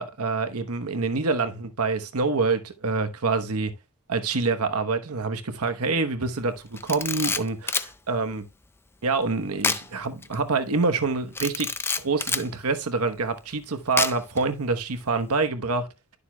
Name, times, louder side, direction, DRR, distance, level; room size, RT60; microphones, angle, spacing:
voice 1, 0.0-3.7 4.1-8.4 9.0-11.7 12.0-15.9, right 4 dB, 80° right, 1.1 m, -26 dB
Camera, 6.8-7.9 9.6-9.9 10.2-10.3 11.3-12.5 14.0-14.4, left 4 dB, 10° left, 0.4 m, -27 dB
11.5 x 6.9 x 2.3 m
head